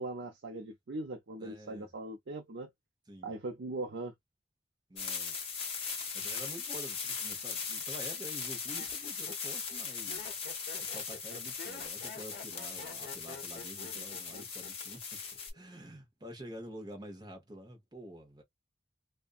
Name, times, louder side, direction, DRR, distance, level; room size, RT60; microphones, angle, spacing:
voice 1, 0.0-2.7 3.2-4.1 13.9-14.0 14.3-14.5, right 2 dB, 75° right, 0.6 m, -40 dB
voice 2, 1.4-1.9 3.1-3.3 4.9-5.5 6.1-10.4 10.9-15.0 15.5-18.4, equal, 25° right, 0.8 m, -48 dB
sound 1, 5.0-15.5, left 5 dB, 30° left, 1.1 m, -39 dB
Laughter, 7.3-7.7 8.3-15.0 15.2-15.7, left 4 dB, 55° left, 0.5 m, -49 dB
2.5 x 2.2 x 2.3 m
head